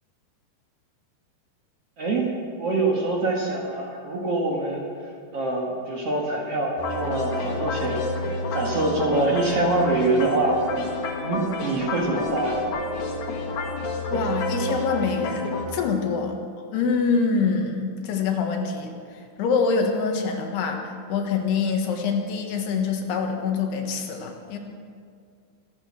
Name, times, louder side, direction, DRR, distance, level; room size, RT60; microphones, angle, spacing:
voice 1, 2.0-2.3 2.6-4.8 5.3-8.0 8.5-10.6 11.2-12.6, right 2 dB, 50° right, -2 dB, 2.1 m, -24 dB
sound 1, 6.8-15.7, left 2 dB, 65° left, 3.5 m, -29 dB
voice 2, 14.1-16.3 16.7-18.9 19.4-24.6, left 5 dB, 85° left, 3 dB, 3.6 m, -25 dB
24.5 x 8.9 x 6.4 m, 2.2 s
omnidirectional pair, 4.6 m